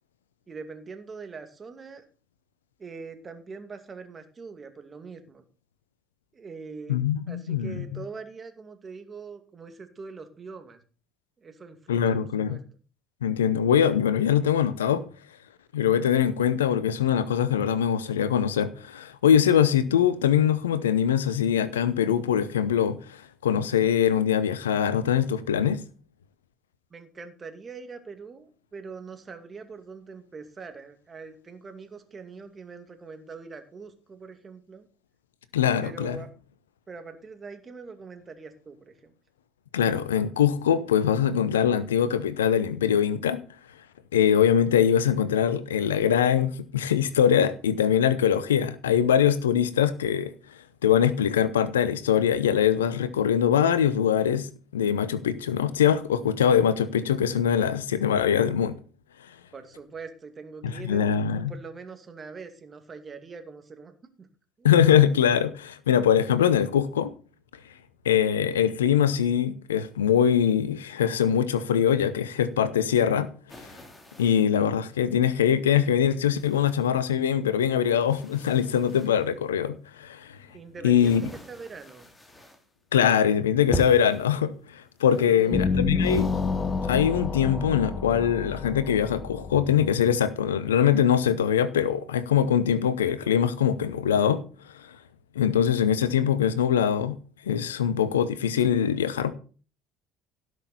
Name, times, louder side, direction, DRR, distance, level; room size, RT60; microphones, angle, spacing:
voice 1, 0.5-2.0 2.8-5.4 6.3-7.0 7.3-10.8 11.4-12.6 26.9-34.9 35.8-36.3 36.9-39.1 59.5-63.9 64.2-64.3 64.6-64.7 80.5-82.1 85.1-86.1, right 4 dB, 30° right, 2.3 m, -43 dB
voice 2, 6.9-8.0 11.9-12.6 13.2-15.0 15.7-25.8 35.5-36.2 39.7-43.4 44.1-50.3 50.8-54.5 54.7-58.8 60.6-61.5 64.6-67.1 68.0-73.3 74.2-80.4 80.8-81.3 82.9-86.3 86.9-94.4 95.3-97.2 97.5-99.3, left 9 dB, 80° left, 0.8 m, -23 dB
sound 1, 73.5-74.6 75.2-75.3 76.3-77.2 77.5-79.3 80.0-82.7 83.0-83.3 83.7-84.3 85.0-85.8 86.1-87.1, equal, 15° left, 2.6 m, -40 dB
sound 2, 85.5-90.7, left 4 dB, 35° left, 1.1 m, -29 dB
17.0 x 6.4 x 4.2 m
figure-of-eight pair, 60°, 0 cm